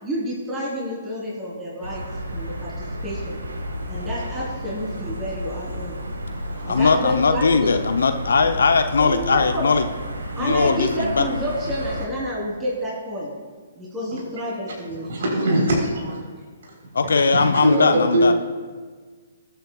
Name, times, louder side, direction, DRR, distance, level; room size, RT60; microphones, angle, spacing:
voice 1, 0.0-2.0 2.3-3.4 3.9-5.9 6.6-7.7 9.0-9.7 10.4-13.3 13.7-15.6, equal, 15° right, -6 dB, 3.5 m, -29 dB
sound 1, 1.8-12.1, equal, 80° right, 1.7 m, -32 dB
voice 2, 6.7-9.9 10.4-11.2 16.9-18.3, left 4 dB, 75° left, 7 dB, 0.7 m, -19 dB
voice 3, 14.9-16.2 16.6-16.8 17.3-18.3, right 1 dB, 60° right, -2 dB, 3.7 m, -21 dB
20.5 x 9.1 x 2.4 m, 1.5 s
figure-of-eight pair, 125°, 0 cm